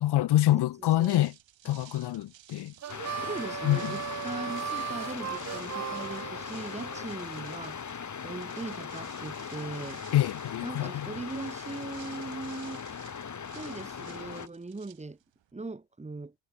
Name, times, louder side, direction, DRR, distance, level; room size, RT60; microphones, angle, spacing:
voice 1, 0.0-1.3 1.6-2.7 3.6-3.9 10.1-11.1, left 14 dB, 55° left, 0.8 m, -26 dB
sound 1, 0.7-15.5, right 11 dB, 65° right, 3.9 m, -55 dB
voice 2, 0.8-1.3 1.7-1.8 3.2-7.8 8.2-10.0 10.6-12.8 13.5-15.2 15.5-16.3, right 3 dB, 15° right, 1.9 m, -40 dB
Harmonica, 2.8-7.1, right 10 dB, 35° right, 0.6 m, -37 dB
sound 2, 2.9-14.5, left 6 dB, 35° left, 2.6 m, -39 dB
cardioid pair, 90°, 49 cm